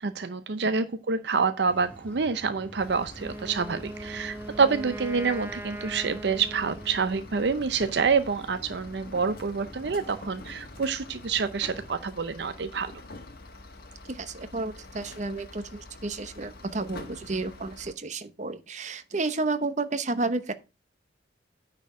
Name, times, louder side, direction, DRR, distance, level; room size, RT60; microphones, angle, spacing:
voice 1, 0.0-12.9, right 5 dB, 65° right, 0.6 m, -27 dB
sound 1, 1.7-11.9, right 1 dB, 5° left, 1.7 m, -50 dB
sound 2, 2.8-17.9, left 2 dB, 55° left, 1.6 m, -46 dB
Wind instrument woodwind instrument, 3.1-7.3, right 1 dB, 10° right, 0.6 m, -40 dB
voice 2, 14.1-20.5, right 3 dB, 40° right, 0.9 m, -31 dB
9.3 x 4.5 x 6.0 m
head